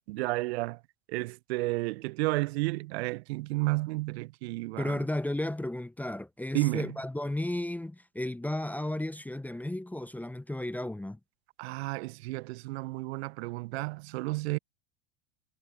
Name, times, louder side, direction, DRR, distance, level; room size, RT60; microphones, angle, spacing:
voice 1, 0.1-0.8 1.1-5.0 6.5-7.0 11.6-14.6, right 22 dB, 60° right, 1.0 m, -32 dB
voice 2, 4.8-11.2, left 1 dB, 5° left, 1.0 m, -34 dB
figure-of-eight pair, 80°, 37 cm